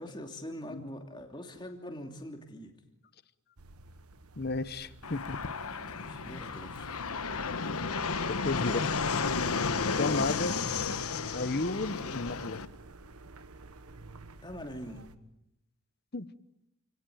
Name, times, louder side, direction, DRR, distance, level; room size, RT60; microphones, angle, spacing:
voice 1, 0.0-2.8 5.9-6.9 10.4-10.7 14.4-15.1, equal, 20° left, 4 dB, 2.8 m, -43 dB
sound 1, 3.6-15.2, right 2 dB, 85° right, 1.3 m, -53 dB
voice 2, 4.4-5.4 6.2-6.4 8.3-9.1 10.0-10.5 11.3-12.6 16.1-16.3, left 3 dB, 45° left, 15 dB, 0.9 m, -33 dB
Fixed-wing aircraft airplane, 5.0-12.7, left 4 dB, 80° left, 1.2 m, -32 dB
29.0 x 18.0 x 9.5 m, 0.84 s
head